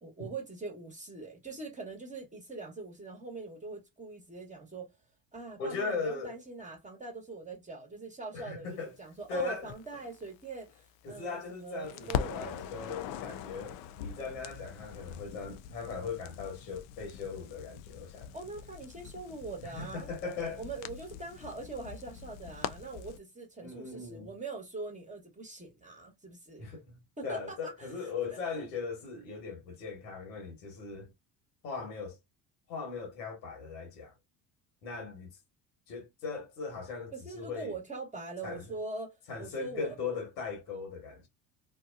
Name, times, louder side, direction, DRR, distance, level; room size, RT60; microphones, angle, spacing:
voice 1, 0.0-4.9 5.3-12.7 18.3-20.1 20.6-26.7 27.2-27.9 28.3-28.7 37.1-40.2, right 3 dB, 15° right, 1.1 m, -43 dB
voice 2, 5.6-6.4 8.3-8.9 9.3-9.7 11.0-18.3 19.6-20.6 23.6-24.3 26.6-31.1 31.6-32.2 32.7-34.1 34.8-35.3 35.9-37.7 38.4-38.6 39.3-41.3, left 4 dB, 75° left, 1.3 m, -39 dB
Crackle, 9.4-11.5 11.8-23.2, left 9 dB, 60° left, 0.5 m, -42 dB
2.7 x 2.2 x 2.4 m
hypercardioid pair, 60°, 49 cm